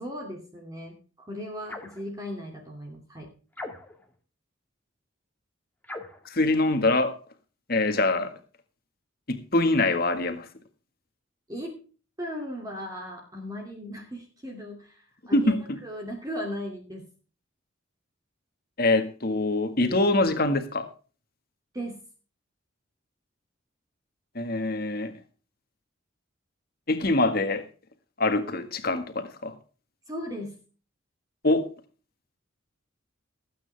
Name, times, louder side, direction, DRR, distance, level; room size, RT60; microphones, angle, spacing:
voice 1, 0.0-3.3 11.5-11.8 12.2-15.6 15.8-17.1 21.7-22.0 30.1-30.6, equal, 20° right, 0 dB, 2.6 m, -37 dB
sound 1, 1.7-2.0 3.5-4.1 5.8-6.3, left 2 dB, 10° left, 1.9 m, -40 dB
voice 2, 6.3-7.2 7.7-8.3 9.3-10.5 15.3-15.8 18.8-20.9 24.4-25.1 26.9-27.6 28.2-29.5 31.4-31.7, left 2 dB, 45° left, 8 dB, 1.8 m, -24 dB
19.5 x 9.0 x 3.5 m, 0.38 s
head